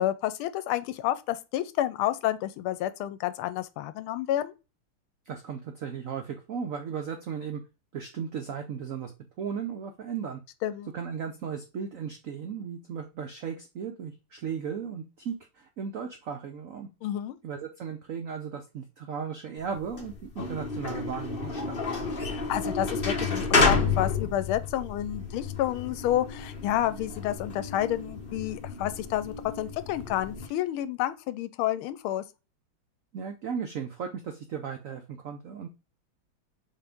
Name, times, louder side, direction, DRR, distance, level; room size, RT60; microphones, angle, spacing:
voice 1, 0.0-4.5 10.6-10.9 17.0-17.4 22.3-32.2, left 13 dB, 85° left, 1.5 m, -30 dB
voice 2, 5.3-7.6 7.9-9.1 9.4-10.4 10.9-16.9 17.4-21.8 33.1-35.7, right 7 dB, 85° right, 0.7 m, -36 dB
sound 1, 19.7-30.5, left 4 dB, 35° left, 0.9 m, -30 dB
4.2 x 3.7 x 3.4 m
omnidirectional pair, 2.3 m